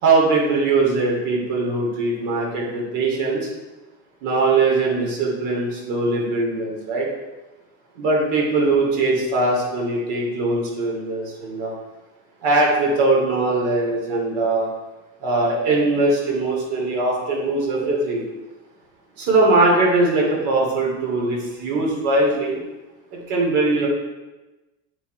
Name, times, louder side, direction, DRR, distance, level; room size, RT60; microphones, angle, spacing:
voice 1, 0.0-3.5 4.2-7.1 7.9-11.7 12.4-14.7 15.2-18.2 19.2-22.6 23.1-23.9, right 2 dB, 65° right, -3 dB, 3.1 m, -21 dB
8.3 x 5.9 x 4.6 m, 1.1 s
cardioid pair, 180°, 36 cm